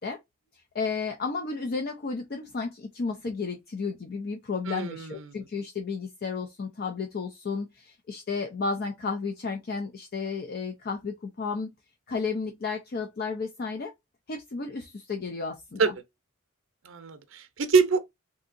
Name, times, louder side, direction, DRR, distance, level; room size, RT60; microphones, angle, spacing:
voice 1, 0.7-11.7 12.1-13.9 14.3-15.9, left 4 dB, 50° left, 0.4 m, -32 dB
voice 2, 4.7-5.3 15.8-15.9 16.8-18.0, right 5 dB, 70° right, 0.6 m, -25 dB
3.7 x 2.7 x 2.5 m
head